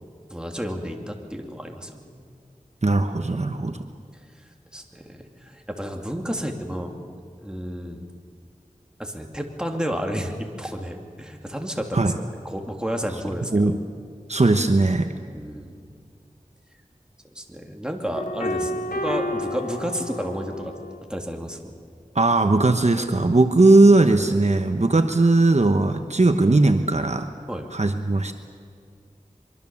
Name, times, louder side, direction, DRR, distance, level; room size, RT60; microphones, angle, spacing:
voice 1, 0.3-2.1 4.7-7.0 7.4-8.1 9.0-13.7 15.3-15.8 17.3-20.7 21.1-21.7 27.5-27.7, equal, 5° right, 2 dB, 2.9 m, -31 dB
voice 2, 2.8-3.8 11.9-12.1 13.5-13.8 14.3-15.1 22.1-27.3 27.7-28.3, right 2 dB, 50° right, 6 dB, 1.1 m, -18 dB
sound 1, 18.1-21.0, left 1 dB, 75° left, 1.2 m, -30 dB
23.5 x 23.5 x 7.2 m, 2.3 s
wide cardioid pair, 55°, 14 cm